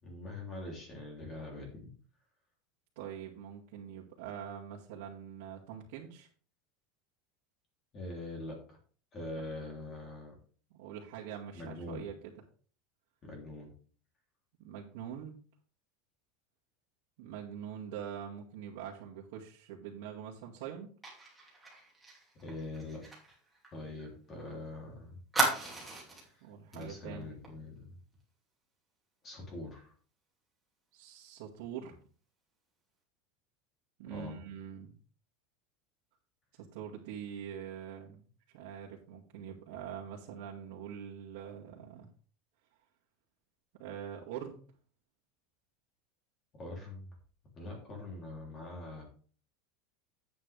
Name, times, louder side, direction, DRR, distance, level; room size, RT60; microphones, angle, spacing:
voice 1, 0.0-1.9 7.9-8.8 9.1-10.3 11.5-12.1 13.2-13.7 22.4-23.0 23.7-25.2 26.2-26.4 26.7-28.0 29.2-29.9 34.1-34.4 46.6-47.1 47.5-49.0, left 2 dB, 25° left, 0 dB, 3.1 m, -43 dB
voice 2, 3.0-6.3 10.7-12.3 14.6-15.4 17.2-20.9 26.4-27.3 30.9-31.9 34.0-35.0 36.6-38.3 38.5-42.1 43.8-44.6, right 8 dB, 65° right, -5 dB, 2.1 m, -44 dB
Fire, 21.0-24.5 24.7-24.8 25.3-26.3 26.7-26.9 27.2-27.5, right 2 dB, ahead, 2.8 m, -35 dB
10.5 x 8.5 x 3.4 m, 0.41 s
supercardioid pair, 175°, 0 cm